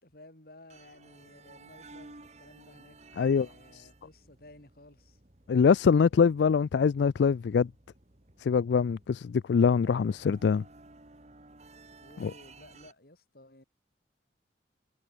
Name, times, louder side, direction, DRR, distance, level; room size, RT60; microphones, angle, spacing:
voice 1, 0.0-5.2 12.0-13.6, left 1 dB, 55° left, 5.2 m, -55 dB
sound 1, 0.7-12.9, right 3 dB, 40° right, 2.2 m, -55 dB
voice 2, 3.2-3.5 3.8-3.9 5.5-7.7 8.4-10.6 12.2-12.3, left 6 dB, 75° left, 0.4 m, -24 dB
head